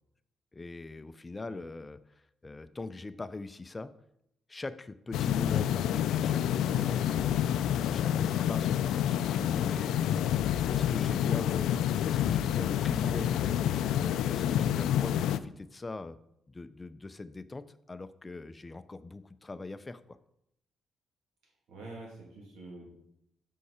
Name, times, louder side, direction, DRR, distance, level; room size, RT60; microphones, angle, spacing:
voice 1, 0.5-3.9 4.5-7.5 7.9-10.0 10.7-13.6 14.0-16.2 16.5-20.2, left 3 dB, 20° left, 13 dB, 0.4 m, -41 dB
sound 1, 5.1-15.4, left 10 dB, 85° left, 0.3 m, -28 dB
voice 2, 21.7-22.9, right 2 dB, 85° right, -2 dB, 2.8 m, -46 dB
8.4 x 5.5 x 4.3 m, 0.77 s
cardioid pair, 90°, 0 cm